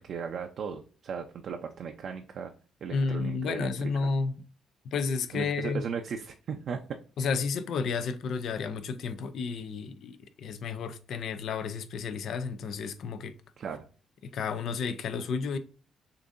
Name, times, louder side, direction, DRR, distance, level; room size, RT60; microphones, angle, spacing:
voice 1, 0.0-2.5 2.8-3.7 5.3-7.0 13.6-13.8, right 6 dB, 65° right, 0.5 m, -36 dB
voice 2, 2.9-4.3 4.9-5.8 7.2-13.3 14.2-15.6, left 5 dB, 70° left, 0.5 m, -31 dB
6.7 x 2.6 x 2.6 m
cardioid pair, 90°, 0 cm